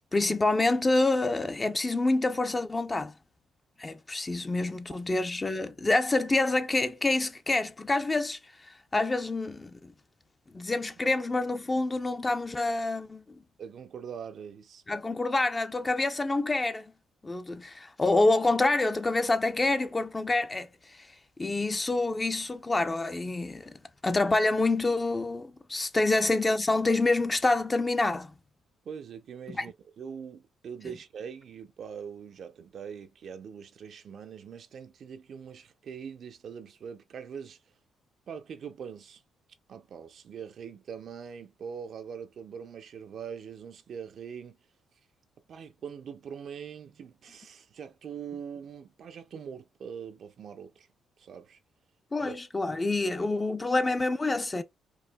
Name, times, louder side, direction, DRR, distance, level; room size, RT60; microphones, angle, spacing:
voice 1, 0.1-3.1 3.8-9.9 10.5-13.4 14.9-16.9 17.2-28.3 29.6-29.7 52.1-54.6, left 2 dB, 20° left, 0.5 m, -27 dB
voice 2, 13.6-14.8 28.8-37.6 38.3-39.2 39.7-44.6 45.5-50.9 51.2-51.6 52.2-52.3 52.6-52.8 53.4-53.5, right 7 dB, 60° right, 0.5 m, -42 dB
4.6 x 2.6 x 2.2 m
cardioid pair, 90°, 0 cm